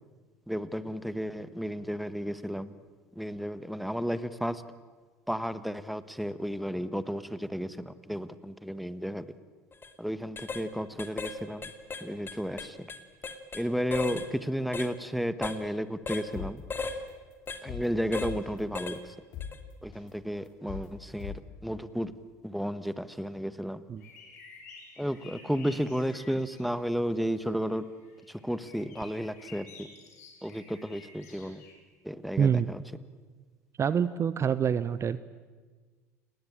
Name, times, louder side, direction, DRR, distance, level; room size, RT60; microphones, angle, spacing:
voice 1, 0.5-2.7 3.1-4.6 5.3-9.3 10.0-11.7 12.0-12.9 13.5-16.6 17.6-19.1 19.8-22.1 22.4-23.8 25.0-27.8 28.3-29.9 30.4-31.6 32.0-32.8, equal, ahead, 14 dB, 1.4 m, -33 dB
sound 1, 9.7-9.9 10.4-10.6 11.0-11.4 11.6-13.6 13.9-14.3 14.7-14.9 15.4-15.6 16.1-16.3 16.7-17.0 17.5-17.6 18.1-18.3 18.8-19.0 19.4-19.6, left 4 dB, 25° left, 2.5 m, -36 dB
sound 2, 16.3-16.5 16.9-17.1 17.5-18.6 19.0-19.1 19.3-19.5 19.9-20.1 20.5-20.9 21.2-21.3, left 9 dB, 55° left, 5.3 m, -39 dB
sound 3, 24.0-26.9 27.3-31.7, left 4 dB, 75° left, 6.0 m, -52 dB
voice 2, 32.4-32.7 33.8-35.2, right 7 dB, 35° right, 15 dB, 0.9 m, -26 dB
29.5 x 19.5 x 8.9 m, 1.4 s
hypercardioid pair, 70°, 9 cm